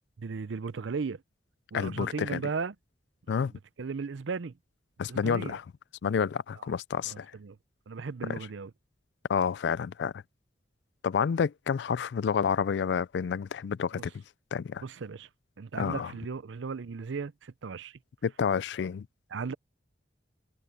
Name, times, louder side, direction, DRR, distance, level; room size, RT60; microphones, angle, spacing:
voice 1, 0.2-1.2 1.7-2.8 3.4-4.6 5.1-5.6 6.6-6.7 7.1-7.6 7.9-8.7 13.9-14.0 14.8-15.3 15.6-18.0 19.3-19.5, right 5 dB, 90° right, 0.6 m, -36 dB
voice 2, 1.7-2.4 3.3-3.5 5.0-5.6 6.0-7.3 9.3-10.1 11.0-14.1 14.5-14.8 15.8-16.1 18.2-19.1, left 6 dB, 65° left, 0.3 m, -29 dB
head